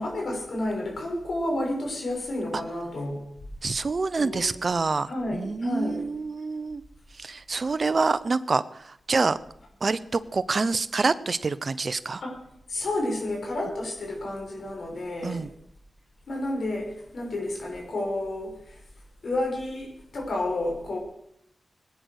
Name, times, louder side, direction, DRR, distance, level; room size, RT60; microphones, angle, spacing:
voice 1, 0.0-3.2 4.2-4.6 5.0-6.1 12.2-12.4 12.7-15.4 16.3-18.8 19.2-21.0, left 1 dB, 70° left, 0 dB, 6.2 m, -30 dB
voice 2, 3.6-6.8 7.2-9.4 9.8-12.2 15.2-15.5, right 4 dB, 55° right, 15 dB, 0.8 m, -27 dB
19.5 x 9.6 x 6.5 m, 0.74 s
cardioid pair, 50°, 0 cm